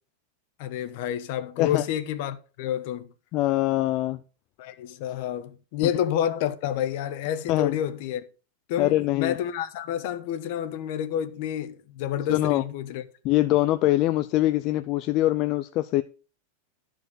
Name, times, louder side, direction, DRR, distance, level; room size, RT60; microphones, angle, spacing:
voice 1, 0.6-3.1 4.6-8.2 8.7-13.1, left 10 dB, 45° left, 1.1 m, -29 dB
voice 2, 3.3-4.2 7.5-7.8 8.8-9.3 12.3-12.6 13.2-16.0, left 16 dB, 30° left, 0.4 m, -23 dB
12.5 x 4.7 x 6.4 m
supercardioid pair, 170°, 0 cm